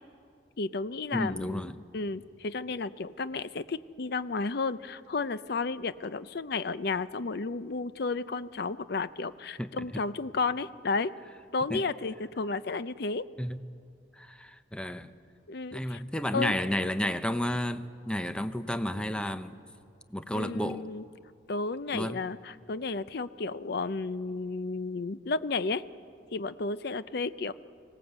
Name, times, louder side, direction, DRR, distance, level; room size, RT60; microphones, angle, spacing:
voice 1, 0.6-11.1 11.5-13.3 15.5-16.0 16.3-16.5 20.3-21.0 21.5-25.8 26.3-27.5, left 3 dB, 60° left, 0.6 m, -32 dB
voice 2, 1.1-1.7 9.6-9.7 11.7-11.8 13.4-13.6 14.1-15.1 15.7-19.6 20.1-20.9 21.9-22.2, left 1 dB, 5° left, 0.7 m, -32 dB
25.5 x 18.0 x 8.0 m
head